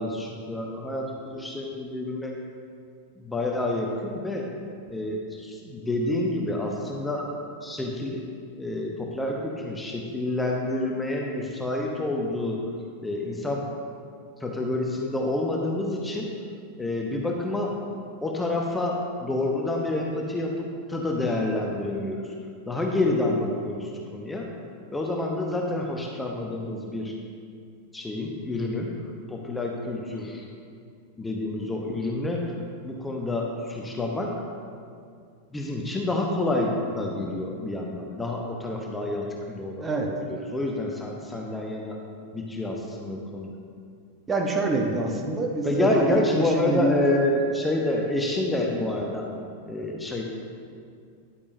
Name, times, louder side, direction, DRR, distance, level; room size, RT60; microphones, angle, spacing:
voice 1, 0.0-2.3 3.2-4.5 4.9-7.3 7.6-8.2 8.5-12.6 13.0-13.7 14.4-16.3 16.8-17.8 18.2-22.3 22.7-24.5 24.9-27.1 27.9-28.9 29.3-30.5 31.2-32.5 32.8-34.3 35.5-42.0 42.3-43.5 45.6-49.2 49.7-50.2, left 1 dB, 10° left, 0 dB, 0.9 m, -28 dB
voice 2, 44.3-46.9, right 2 dB, 15° right, 1 dB, 0.9 m, -26 dB
10.0 x 8.5 x 2.7 m, 2.3 s
figure-of-eight pair, 90°, 0 cm